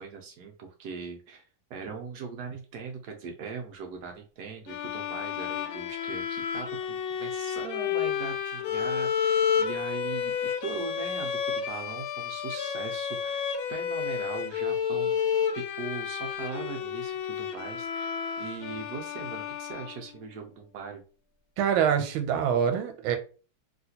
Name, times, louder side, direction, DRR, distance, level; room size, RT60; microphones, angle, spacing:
voice 1, 0.0-15.2 15.5-21.0, right 5 dB, 75° right, 1.0 m, -40 dB
sound 1, 4.7-20.3, left 8 dB, 90° left, 1.4 m, -31 dB
voice 2, 21.6-23.2, right 8 dB, 90° right, 1.4 m, -25 dB
3.1 x 2.8 x 2.7 m
omnidirectional pair, 2.2 m